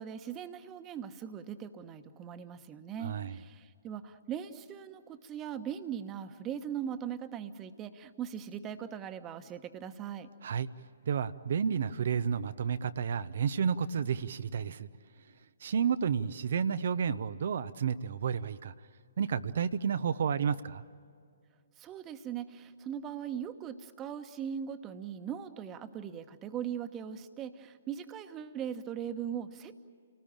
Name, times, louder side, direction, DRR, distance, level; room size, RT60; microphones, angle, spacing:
voice 1, 0.0-10.3 21.8-29.8, right 8 dB, 20° right, 9 dB, 1.3 m, -40 dB
voice 2, 3.0-3.4 10.4-10.7 11.1-14.9 15.6-18.7 19.2-20.8, right 7 dB, 55° right, 12 dB, 0.7 m, -31 dB
29.5 x 19.5 x 8.8 m, 2.2 s
figure-of-eight pair, 130°, 0 cm